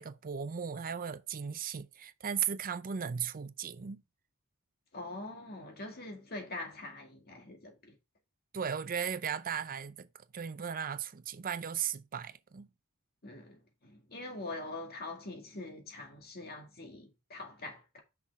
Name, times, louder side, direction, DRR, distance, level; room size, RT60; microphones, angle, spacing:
voice 1, 0.0-4.0 8.5-10.1 10.3-12.7, right 7 dB, 40° right, 0.5 m, -36 dB
voice 2, 4.9-7.9 13.2-18.0, left 2 dB, 45° left, 2.1 m, -44 dB
6.0 x 5.8 x 3.6 m
head